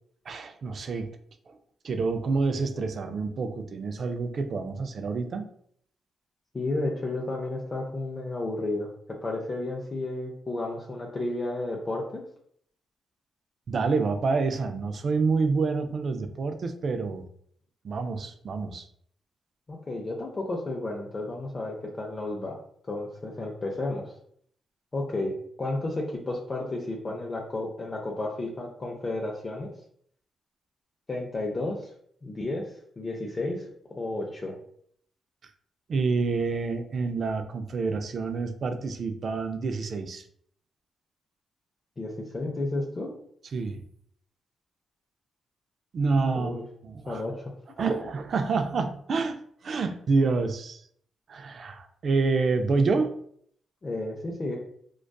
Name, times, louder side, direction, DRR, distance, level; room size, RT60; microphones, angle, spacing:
voice 1, 0.3-1.1 1.5-1.6 1.8-5.5 13.7-17.2 17.8-18.9 35.9-40.2 43.5-43.8 45.9-47.2 47.8-50.8 51.3-53.1, right 4 dB, 60° right, 7 dB, 0.3 m, -28 dB
voice 2, 6.5-8.9 9.2-12.2 19.7-22.6 22.9-24.1 24.9-29.7 31.1-31.9 32.2-32.6 33.0-33.7 34.0-34.5 42.0-43.1 46.3-46.6 47.1-47.5 53.8-54.5, left 2 dB, 40° left, -2 dB, 0.5 m, -32 dB
2.4 x 2.3 x 2.2 m, 0.64 s
cardioid pair, 65°, 0 cm